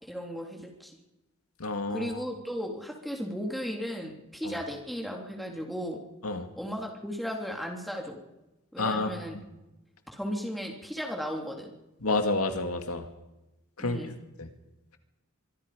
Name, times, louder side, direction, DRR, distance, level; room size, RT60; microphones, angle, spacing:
voice 1, 0.0-0.9 1.9-6.0 6.6-8.2 8.7-9.4 10.1-11.7 13.8-14.1, equal, ahead, 0 dB, 3.5 m, -35 dB
voice 2, 1.6-2.1 4.4-4.6 6.2-6.5 8.8-9.2 12.0-13.1 13.8-14.0 14.4-14.5, left 3 dB, 80° left, 6 dB, 2.3 m, -29 dB
24.5 x 24.0 x 5.2 m, 0.98 s
head